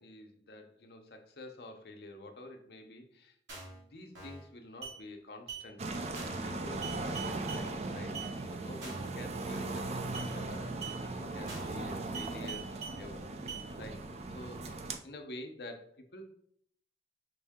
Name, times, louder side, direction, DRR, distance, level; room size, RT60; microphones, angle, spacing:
voice 1, 0.0-3.4 3.6-14.0 14.3-15.9 16.1-16.2, left 1 dB, 60° left, 4 dB, 0.6 m, -49 dB
sound 1, 3.5-3.8 4.1-4.5 4.8-5.0 5.5-5.6 6.1-6.5 6.8-7.6 8.1-8.3 8.8-9.1 9.5-9.8 10.1-10.3 10.8-11.0 11.5-11.8 12.1-13.0 13.5-13.6, right 5 dB, 85° right, 1.9 m, -43 dB
sound 2, 5.8-15.0, right 2 dB, 35° right, 0.4 m, -38 dB
5.4 x 2.7 x 3.5 m, 0.65 s
head